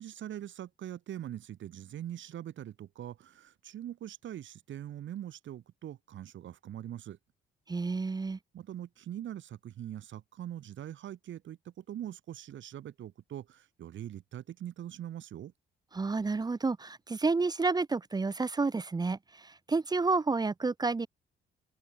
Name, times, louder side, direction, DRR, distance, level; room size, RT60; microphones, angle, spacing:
voice 1, 0.0-7.2 8.5-15.5, right 11 dB, 70° right, 4.2 m, -42 dB
voice 2, 7.7-8.4 15.9-21.1, right 3 dB, 20° right, 0.7 m, -30 dB
open air
cardioid pair, 90°, 20 cm